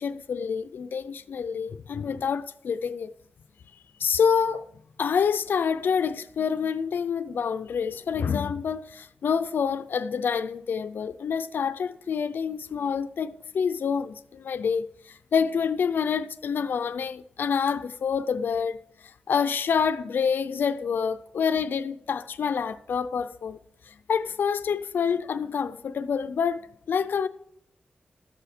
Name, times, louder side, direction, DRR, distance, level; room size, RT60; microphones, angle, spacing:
voice 1, 0.0-3.1 4.0-4.6 5.0-18.8 19.3-23.6 23.9-27.3, left 6 dB, 90° left, 0.5 m, -27 dB
13.0 x 6.9 x 4.4 m
wide cardioid pair, 90°, 3 cm